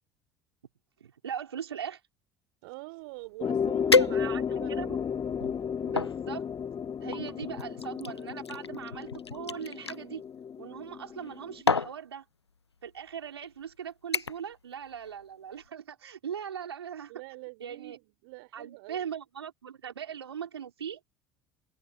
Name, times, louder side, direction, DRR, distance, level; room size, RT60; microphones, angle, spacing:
voice 1, 1.0-2.0 4.1-5.0 5.8-6.5 7.0-10.2 10.6-12.2 12.8-17.1 17.6-18.0 18.5-21.0, right 8 dB, 80° right, 5.7 m, -40 dB
voice 2, 2.6-4.8 7.5-7.6 17.1-19.1, right 26 dB, 65° right, 4.5 m, -45 dB
sound 1, 3.3-3.4 3.9-4.7 5.3-6.2 7.1-10.0 11.1-11.3 11.7-12.0 12.9-13.0 13.4-13.7 14.1-14.5 14.9-15.2 15.6-15.7, left 4 dB, 90° left, 0.7 m, -29 dB
sound 2, 3.4-11.6, left 7 dB, 35° left, 5.7 m, -34 dB
figure-of-eight pair, 60°, 13 cm